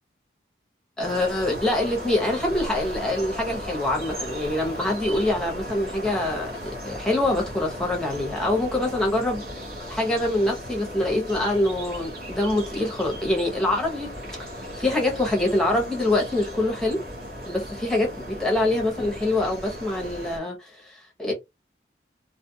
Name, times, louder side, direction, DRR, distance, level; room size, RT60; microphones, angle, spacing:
voice 1, 1.0-6.5 6.8-9.6 9.9-14.1 14.8-17.0 17.5-21.3, left 1 dB, 5° left, 0.8 m, -25 dB
sound 1, 1.0-20.4, equal, 50° right, 1.0 m, -36 dB
2.5 x 2.4 x 2.7 m
head